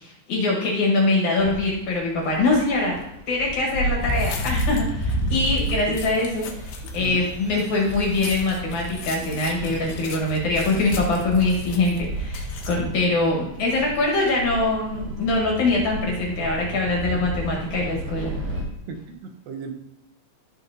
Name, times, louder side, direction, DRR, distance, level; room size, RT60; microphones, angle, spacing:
voice 1, 0.0-18.3, left 2 dB, 55° left, -2 dB, 2.6 m, -23 dB
sound 1, 1.4-1.7 2.3-12.8, equal, 90° left, 3.2 m, -30 dB
sound 2, 1.8-18.6, equal, 60° right, 3.9 m, -37 dB
voice 2, 6.8-7.2 18.9-19.7, right 6 dB, 80° right, 4 dB, 3.1 m, -36 dB
15.5 x 5.3 x 2.9 m, 0.80 s
omnidirectional pair, 4.9 m